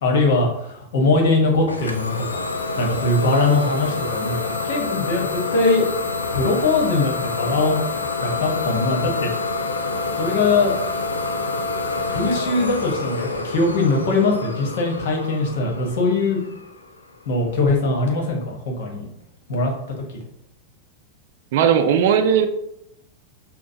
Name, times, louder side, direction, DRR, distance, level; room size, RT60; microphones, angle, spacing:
voice 1, 0.0-2.4 2.8-5.8 6.3-7.8 8.2-9.3 10.2-10.7 12.0-16.4 17.3-19.1 19.5-20.0, left 3 dB, 55° left, 1 dB, 1.1 m, -21 dB
Idling / Domestic sounds home sounds, 1.7-17.2, left 3 dB, 75° left, 0.4 m, -27 dB
voice 2, 21.5-22.5, right 8 dB, 50° right, 7 dB, 0.4 m, -17 dB
6.1 x 2.1 x 2.8 m, 0.78 s
figure-of-eight pair, 90°, 0 cm